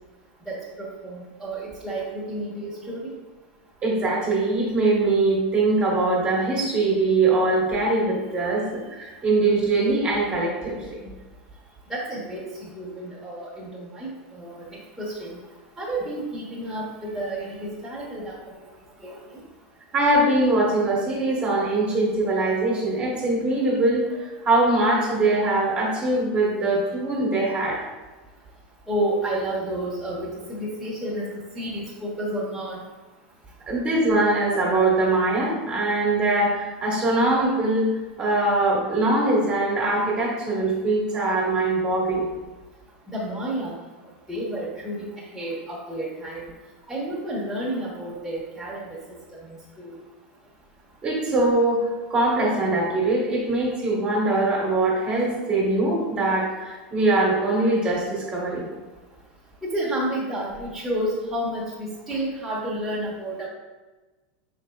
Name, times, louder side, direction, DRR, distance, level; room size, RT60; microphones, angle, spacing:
voice 1, 0.5-3.1 11.9-15.4 15.8-18.7 19.0-19.4 28.9-31.3 31.5-32.9 43.1-43.8 44.3-46.4 46.9-48.8 49.4-50.0 59.6-63.5, right 1 dB, 5° right, -9 dB, 1.0 m, -31 dB
voice 2, 3.8-11.1 19.9-27.8 33.7-37.9 38.2-42.2 51.0-58.6, right 2 dB, 25° right, -3 dB, 1.2 m, -22 dB
4.9 x 4.0 x 2.3 m, 1.2 s
supercardioid pair, 135°, 5 cm